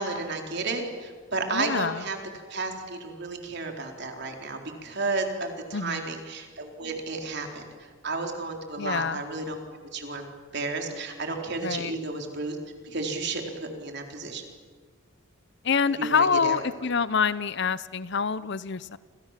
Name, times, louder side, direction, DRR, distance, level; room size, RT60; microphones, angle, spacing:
voice 1, 0.0-2.2 2.5-7.7 8.0-9.6 9.9-10.3 10.5-12.6 12.8-14.4 16.0-16.9, right 3 dB, 50° right, 3 dB, 4.1 m, -32 dB
voice 2, 1.5-2.0 5.7-6.0 8.8-9.2 11.6-11.9 15.7-19.0, left 5 dB, 55° left, 16 dB, 0.7 m, -26 dB
29.5 x 26.5 x 7.5 m, 1.5 s
head